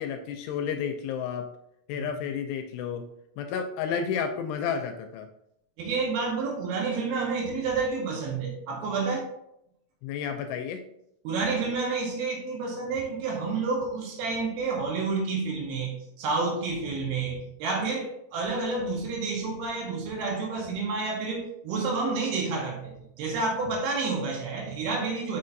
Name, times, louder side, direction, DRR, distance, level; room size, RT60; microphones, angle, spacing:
voice 1, 0.0-1.5 1.9-3.1 3.4-5.3 10.0-10.8, left 7 dB, 80° left, 6 dB, 2.5 m, -31 dB
voice 2, 5.8-9.3 11.2-25.4, right 4 dB, 70° right, -1 dB, 2.9 m, -29 dB
6.6 x 5.6 x 2.6 m, 0.78 s
omnidirectional pair, 4.9 m